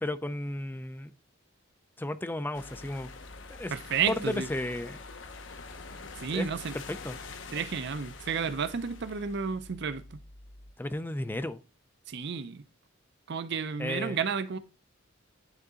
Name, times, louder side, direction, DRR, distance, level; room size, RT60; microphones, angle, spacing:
voice 1, 0.0-1.1 2.0-3.1 3.5-3.7 4.1-5.0 6.3-6.5 6.9-7.2 10.8-11.6 13.8-14.2, left 1 dB, 10° left, 0.4 m, -33 dB
sound 1, 2.5-10.7, left 3 dB, 65° left, 0.8 m, -45 dB
voice 2, 3.7-4.5 6.2-6.7 7.5-10.2 12.1-12.6 13.3-14.6, right 6 dB, 55° right, 0.5 m, -32 dB
9.6 x 3.9 x 3.7 m
head